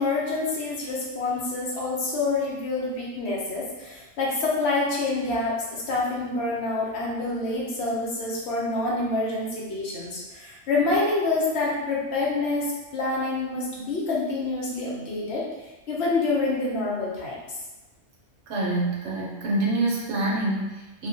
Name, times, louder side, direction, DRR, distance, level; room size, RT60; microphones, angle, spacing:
voice 1, 0.0-15.5 15.9-17.6, left 3 dB, 70° left, -5 dB, 0.9 m, -27 dB
voice 2, 18.5-21.1, right 2 dB, 75° right, -4 dB, 1.0 m, -26 dB
2.4 x 2.2 x 2.6 m, 1.1 s
omnidirectional pair, 1.2 m